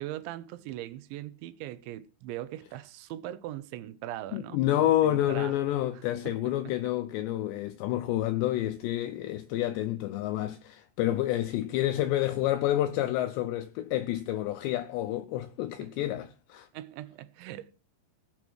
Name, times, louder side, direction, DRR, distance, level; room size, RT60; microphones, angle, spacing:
voice 1, 0.0-5.6 6.2-6.7 15.8-15.9 16.7-17.8, right 14 dB, 80° right, 3.1 m, -40 dB
voice 2, 4.3-16.7, left 13 dB, 80° left, 2.8 m, -29 dB
18.5 x 7.3 x 6.2 m
omnidirectional pair, 5.4 m